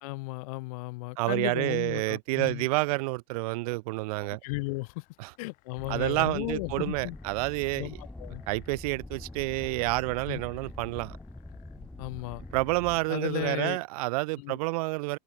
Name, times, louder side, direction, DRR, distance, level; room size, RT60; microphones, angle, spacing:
voice 1, 0.0-2.7 4.2-5.0 5.4-7.2 7.8-8.4 10.3-10.4 12.0-12.4 13.1-13.8 14.4-14.6, left 24 dB, 60° left, 0.6 m, -35 dB
voice 2, 1.2-4.4 5.2-5.3 5.9-8.0 8.5-11.2 12.5-15.2, right 23 dB, 60° right, 0.8 m, -29 dB
sound 1, 4.4-13.6, left 22 dB, 40° left, 4.0 m, -61 dB
sound 2, 5.8-13.0, left 2 dB, 5° left, 0.7 m, -44 dB
supercardioid pair, 175°, 21 cm